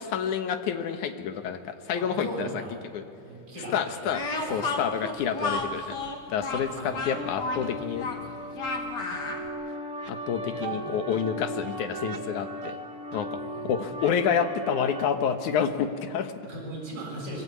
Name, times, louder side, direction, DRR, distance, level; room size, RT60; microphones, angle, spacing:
voice 1, 0.0-2.5 2.9-3.0 3.7-4.2 4.5-5.8 6.3-8.1 10.1-12.8 13.1-13.4 13.6-16.3, left 7 dB, 70° left, 8 dB, 2.6 m, -28 dB
voice 2, 1.9-2.8 3.2-4.0 4.5-4.8 5.4-6.0 6.8-7.0 10.4-11.0 13.3-13.9 16.4-17.4, right 1 dB, 35° right, -3 dB, 7.4 m, -39 dB
Speech, 4.1-9.5, left 3 dB, 35° left, 2.2 m, -32 dB
sound 1, 7.1-15.1, right 1 dB, 50° right, 0.9 m, -37 dB
25.0 x 21.5 x 8.6 m, 2.6 s
omnidirectional pair, 3.8 m